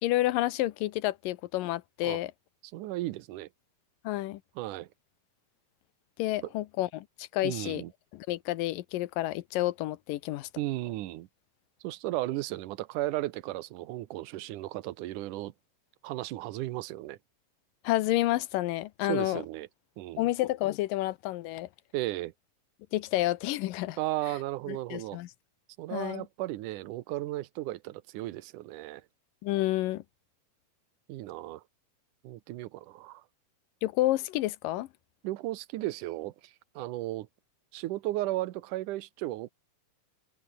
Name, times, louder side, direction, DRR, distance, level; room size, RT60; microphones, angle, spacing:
voice 1, 0.0-2.3 4.0-4.4 6.2-7.8 8.1-10.5 17.8-19.4 20.2-21.7 22.9-24.0 24.7-25.3 25.9-26.3 29.4-30.0 33.8-34.9, left 16 dB, 85° left, 2.5 m, -30 dB
voice 2, 2.6-3.5 4.6-4.9 6.4-6.5 7.4-7.9 10.6-11.3 11.8-15.5 16.0-17.2 19.1-19.7 20.0-20.3 21.9-22.3 24.0-25.2 25.8-29.0 31.1-31.6 32.2-33.2 35.2-37.3 37.7-39.5, right 16 dB, 75° right, 2.4 m, -35 dB
omnidirectional pair, 3.8 m